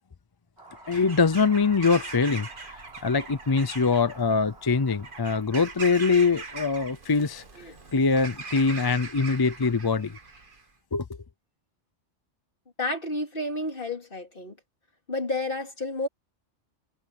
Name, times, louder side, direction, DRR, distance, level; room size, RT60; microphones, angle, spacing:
sound 1, 0.6-5.6, right 2 dB, 65° right, 3.8 m, -51 dB
Bird vocalization bird call bird song / Crow, 0.8-10.6, right 4 dB, 45° right, 1.7 m, -41 dB
voice 1, 0.9-7.4 7.9-10.2 10.9-11.0, left 4 dB, 30° left, 0.4 m, -23 dB
voice 2, 12.8-14.6 15.1-16.1, left 2 dB, 50° left, 3.3 m, -31 dB
omnidirectional pair, 1.2 m